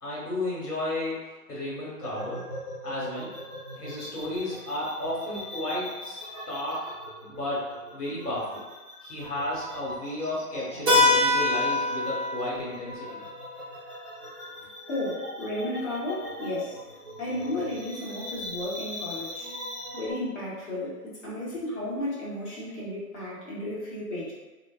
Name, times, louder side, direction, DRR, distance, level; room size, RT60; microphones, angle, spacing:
voice 1, 0.0-2.4 2.8-3.3 3.7-6.2 6.5-6.8 7.2-8.6 9.0-13.1, left 1 dB, 75° left, -7 dB, 1.4 m, -33 dB
sound 1, 2.0-20.1, left 1 dB, 15° left, 0.6 m, -41 dB
Keyboard (musical), 10.9-15.3, left 2 dB, 20° right, 0.8 m, -26 dB
voice 2, 14.9-16.8 17.2-19.5 19.9-24.3, left 1 dB, 50° left, -9 dB, 1.3 m, -33 dB
2.5 x 2.1 x 2.3 m, 1.2 s
figure-of-eight pair, 140°, 46 cm